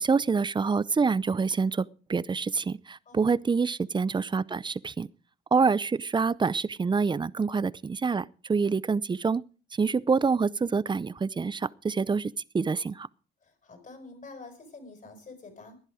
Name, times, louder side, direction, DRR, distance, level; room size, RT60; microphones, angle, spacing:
voice 1, 0.0-1.8 2.1-5.1 5.5-9.4 9.7-13.1, right 5 dB, 25° right, 0.6 m, -26 dB
voice 2, 3.1-3.4 13.4-15.8, left 3 dB, 40° left, 5.5 m, -47 dB
16.0 x 10.5 x 4.9 m
cardioid pair, 90°, 20 cm